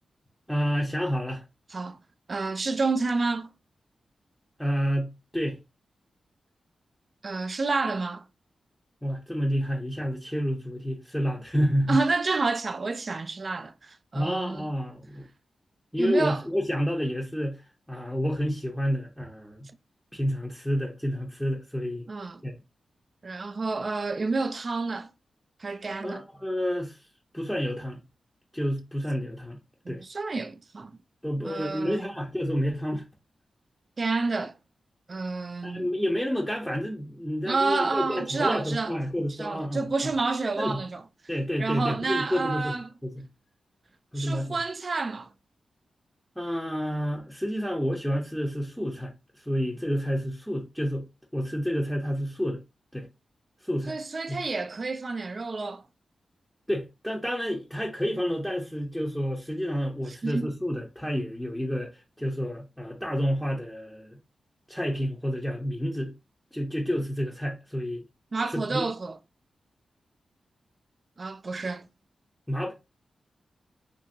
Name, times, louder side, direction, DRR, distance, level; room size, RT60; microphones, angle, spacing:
voice 1, 0.5-1.4 4.6-5.6 9.0-12.0 14.1-15.3 15.9-19.7 20.1-22.1 22.4-22.5 26.0-27.0 27.3-28.0 28.5-29.6 29.9-30.0 31.2-33.0 35.6-40.1 40.6-40.8 41.3-43.2 44.1-44.6 46.4-51.1 51.3-52.6 52.9-53.1 53.6-54.0 54.3-54.4 56.7-64.2 64.7-66.1 66.5-68.0 68.5-68.9 72.5-72.7, equal, 5° left, 0.6 m, -29 dB
voice 2, 2.3-3.5 7.2-8.2 11.9-14.7 16.0-16.4 22.1-22.4 23.2-25.1 25.6-26.3 29.9-30.9 31.4-32.1 34.0-34.5 35.1-35.9 37.4-38.9 39.4-41.0 41.6-42.9 44.2-45.3 53.9-55.8 60.2-60.5 68.3-69.1 71.2-71.9, right 3 dB, 50° right, 0.3 m, -29 dB
2.7 x 2.6 x 2.6 m
cardioid pair, 55°, 0 cm